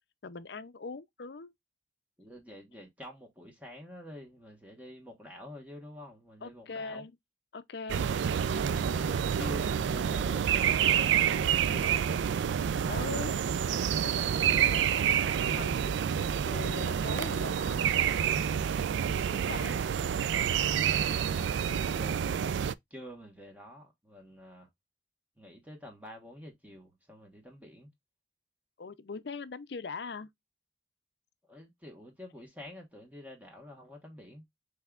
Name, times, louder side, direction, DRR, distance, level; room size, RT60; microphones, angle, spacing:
voice 1, 0.2-1.5 6.4-7.2 7.5-8.1 12.9-13.4 14.0-18.4 19.1-19.8 28.8-30.3, left 4 dB, 65° left, 0.5 m, -42 dB
voice 2, 2.2-7.0 8.7-12.0 21.7-22.4 22.9-24.7 25.4-27.9 31.5-34.4, left 1 dB, 10° right, 1.2 m, -48 dB
sound 1, 7.9-22.7, right 8 dB, 80° right, 0.3 m, -28 dB
5.4 x 3.4 x 2.3 m
head